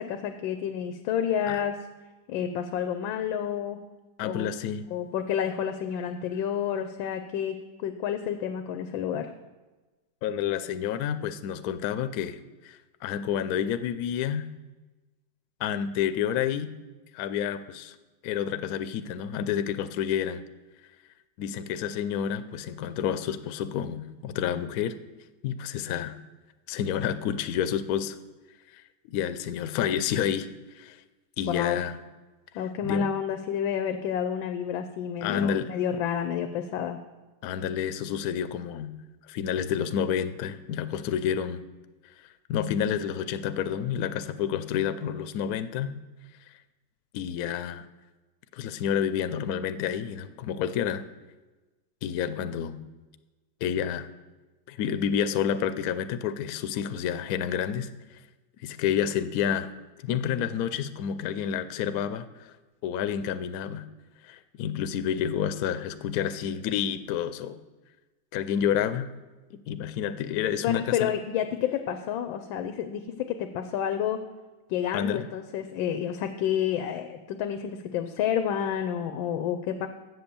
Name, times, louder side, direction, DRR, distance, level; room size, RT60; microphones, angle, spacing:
voice 1, 0.0-1.8 2.3-3.8 4.2-4.5 4.9-9.3 31.5-31.8 32.5-37.0 70.6-74.2 74.7-79.9, left 9 dB, 90° left, 8 dB, 1.4 m, -30 dB
voice 2, 4.2-4.9 10.2-14.5 15.6-16.7 17.1-18.0 18.2-20.4 21.4-25.0 25.4-26.2 26.7-28.2 28.7-28.8 29.1-30.5 30.8-31.0 31.4-32.0 32.8-33.1 35.2-35.7 37.4-38.9 39.3-41.6 42.5-45.9 47.1-47.9 48.5-51.0 52.0-52.8 53.6-54.1 54.7-57.9 58.6-59.7 60.0-62.5 62.8-63.8 64.2-67.6 68.3-69.1 69.5-71.1 74.9-75.3, left 9 dB, 70° left, 12 dB, 0.9 m, -29 dB
8.2 x 7.9 x 6.9 m, 1.2 s
omnidirectional pair, 2.1 m